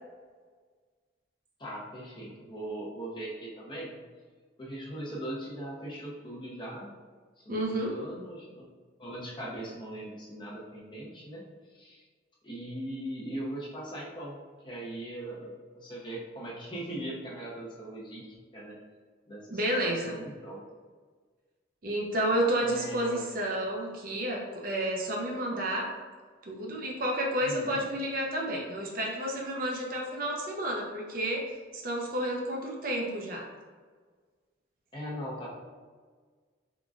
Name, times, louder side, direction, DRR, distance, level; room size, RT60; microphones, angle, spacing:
voice 1, 1.6-4.0 4.6-6.9 7.4-8.7 9.0-11.4 11.7-12.0 12.4-14.4 14.6-18.3 18.5-18.8 19.3-20.6 22.6-23.2 27.4-27.8 34.9-35.5, right 1 dB, 25° left, -4 dB, 0.7 m, -40 dB
voice 2, 7.5-8.0 19.5-20.2 21.8-25.9 26.4-31.4 31.7-33.5, right 1 dB, 45° right, -1 dB, 0.6 m, -31 dB
3.7 x 3.6 x 2.4 m, 1.5 s
head